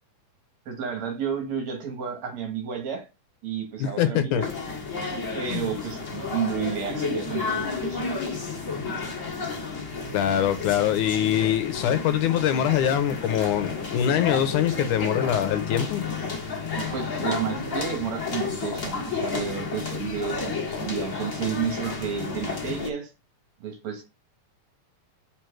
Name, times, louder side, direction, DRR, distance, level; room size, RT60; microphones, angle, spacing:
voice 1, 0.7-3.1 3.4-4.5 5.3-8.3 16.9-23.1 23.6-24.0, right 7 dB, 60° right, 2.6 m, -31 dB
voice 2, 3.8-4.5 5.5-5.7 10.1-16.0, left 10 dB, 80° left, 2.0 m, -23 dB
sound 1, 4.4-22.9, left 4 dB, 35° left, 1.3 m, -31 dB
5.2 x 4.5 x 6.0 m
omnidirectional pair, 3.8 m